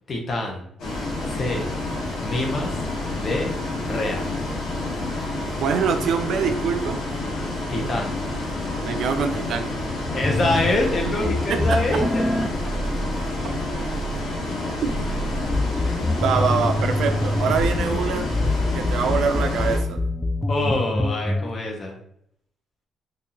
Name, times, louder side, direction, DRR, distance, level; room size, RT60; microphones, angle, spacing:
voice 1, 0.1-0.7 1.3-1.7 2.2-2.8 3.2-3.5 3.8-4.3 7.7-8.2 10.1-12.3 14.6-14.7 15.8-16.1 18.0-18.1 20.5-22.0, left 2 dB, 40° left, 1 dB, 0.8 m, -26 dB
Bus, 0.8-19.8, left 2 dB, 85° left, 1.1 m, -29 dB
voice 2, 5.6-7.0 8.8-9.7 11.5-12.1 13.4-13.5 14.8-14.9 16.2-18.3 18.7-20.0, right 6 dB, 75° right, 7 dB, 0.4 m, -24 dB
sound 1, 10.2-21.5, left 1 dB, 10° left, 0.3 m, -26 dB
3.9 x 2.6 x 2.8 m, 0.71 s
cardioid pair, 125°, 0 cm